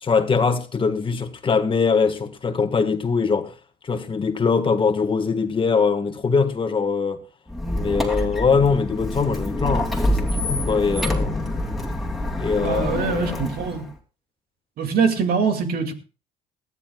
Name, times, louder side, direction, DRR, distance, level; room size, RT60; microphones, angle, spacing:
voice 1, 0.0-3.5 3.8-7.2 7.7-11.6 12.4-13.5, left 5 dB, 30° left, 1.5 m, -22 dB
Squeak, 7.5-13.9, left 1 dB, ahead, 2.8 m, -26 dB
voice 2, 12.6-13.8 14.8-15.9, right 5 dB, 60° right, 2.4 m, -23 dB
19.5 x 14.0 x 2.3 m
cardioid pair, 110°, 17 cm